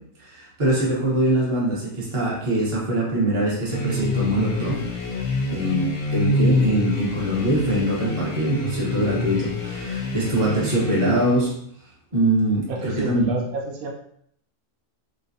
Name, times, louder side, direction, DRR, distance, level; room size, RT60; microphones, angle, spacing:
voice 1, 0.2-4.9 5.5-11.5 12.1-13.3, right 1 dB, 30° right, -5 dB, 0.7 m, -23 dB
sound 1, 3.7-11.5, left 2 dB, 55° left, 0.7 m, -26 dB
voice 2, 12.7-13.9, right 3 dB, 80° right, 0 dB, 1.0 m, -29 dB
3.2 x 2.3 x 2.6 m, 0.67 s
omnidirectional pair, 1.5 m